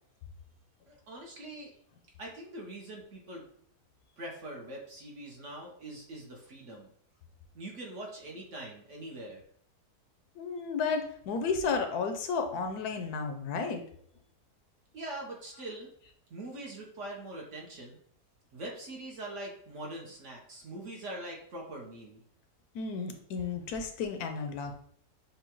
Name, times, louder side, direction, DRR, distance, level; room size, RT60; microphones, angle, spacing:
voice 1, 0.9-1.7 2.2-3.4 4.2-6.9 7.5-9.4 14.9-15.9 16.3-18.0 18.5-22.2, right 1 dB, 55° right, -1 dB, 1.0 m, -43 dB
voice 2, 10.4-13.8 22.7-24.8, left 5 dB, 75° left, 6 dB, 1.0 m, -33 dB
6.7 x 2.2 x 2.9 m, 0.63 s
omnidirectional pair, 1.8 m